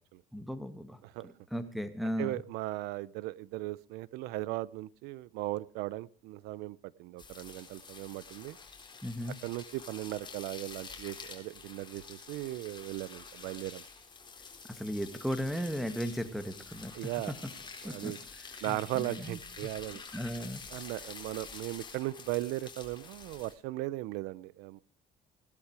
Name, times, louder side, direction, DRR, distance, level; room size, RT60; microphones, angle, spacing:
voice 1, 0.3-1.0 1.2-2.4 9.0-9.4 14.7-16.9 17.8-18.1 18.7-19.4 20.1-20.6, equal, ahead, 10 dB, 2.0 m, -36 dB
voice 2, 2.0-8.6 9.4-13.8 16.9-17.3 17.8-18.2 18.6-20.0 20.7-24.8, right 17 dB, 85° right, 21 dB, 0.7 m, -37 dB
sound 1, 7.2-23.5, left 5 dB, 30° left, 4.3 m, -48 dB
17.5 x 12.0 x 4.8 m, 0.41 s
cardioid pair, 95°, 16 cm